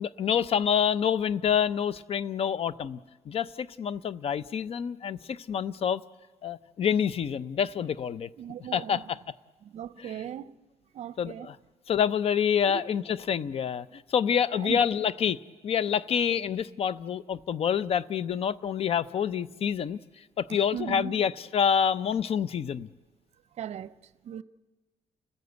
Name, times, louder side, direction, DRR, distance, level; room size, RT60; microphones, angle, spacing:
voice 1, 0.0-3.0 3.3-6.0 6.4-8.3 8.7-9.2 10.0-10.1 11.2-11.6 11.9-20.0 20.4-22.9, left 8 dB, 50° left, 0.7 m, -27 dB
voice 2, 8.4-9.0 9.6-10.6 10.9-11.5 12.7-12.8 14.6-14.8 20.5-21.2 23.6-23.9 24.2-24.4, right 10 dB, 60° right, 0.7 m, -37 dB
30.0 x 14.5 x 8.1 m
cardioid pair, 125°, 12 cm